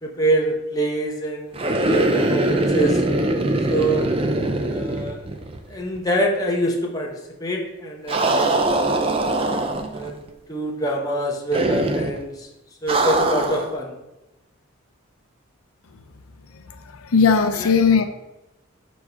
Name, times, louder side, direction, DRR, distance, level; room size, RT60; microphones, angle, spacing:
voice 1, 0.0-3.0 3.7-4.1 4.7-5.2 5.7-7.1 7.4-9.2 9.9-10.2 10.5-12.5 12.8-13.9 17.5-17.7, right 1 dB, 15° left, -2 dB, 0.9 m, -25 dB
sound 1, 1.5-5.7 6.0-6.1 8.1-10.1 11.5-12.2 12.9-13.7, right 2 dB, 25° right, 0.4 m, -22 dB
voice 2, 17.0-18.0, left 5 dB, 85° left, 8 dB, 0.5 m, -17 dB
4.7 x 4.0 x 5.6 m, 0.97 s
head